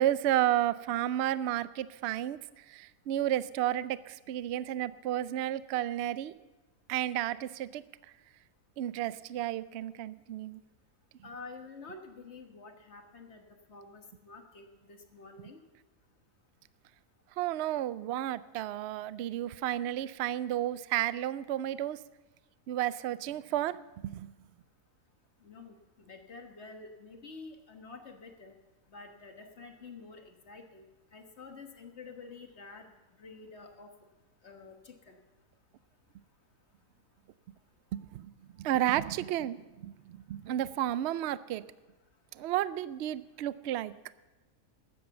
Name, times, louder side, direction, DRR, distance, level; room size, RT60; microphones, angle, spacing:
voice 1, 0.0-2.4 2.7-6.3 6.9-7.8 8.8-10.6 17.4-22.0 22.7-23.8 24.0-24.3 37.9-38.3 38.6-41.6 42.4-43.9, right 12 dB, 70° right, 17 dB, 0.6 m, -32 dB
voice 2, 11.2-13.4 13.7-15.6 25.4-25.7 26.0-28.5 28.9-30.8 31.1-32.9 33.2-33.9 34.4-35.2, left 4 dB, 50° left, 5 dB, 1.5 m, -49 dB
13.0 x 9.4 x 6.9 m, 1.2 s
omnidirectional pair, 1.6 m